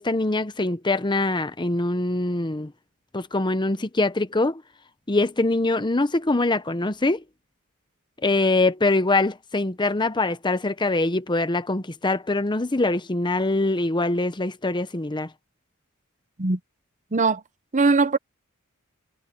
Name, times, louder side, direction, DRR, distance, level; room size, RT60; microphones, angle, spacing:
voice 1, 0.0-2.7 3.1-4.6 5.1-7.2 8.2-15.3, left 2 dB, 20° left, 0.9 m, -23 dB
voice 2, 17.1-17.4 17.7-18.2, right 3 dB, 35° right, 0.9 m, -20 dB
head